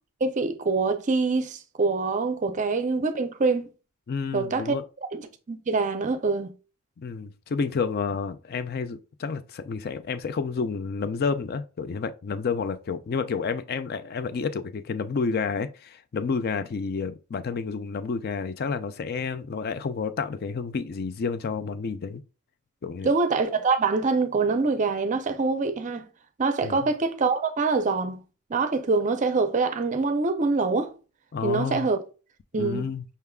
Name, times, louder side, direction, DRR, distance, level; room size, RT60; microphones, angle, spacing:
voice 1, 0.2-3.7 4.3-4.8 5.1-6.5 23.0-26.1 26.4-28.2 28.5-30.9 31.4-32.0 32.5-32.9, right 4 dB, 35° right, 0.5 m, -25 dB
voice 2, 4.1-4.8 7.0-22.2 22.8-23.1 26.6-26.8 31.3-31.9 32.6-33.0, left 5 dB, 45° left, 0.4 m, -30 dB
5.5 x 3.4 x 2.3 m
head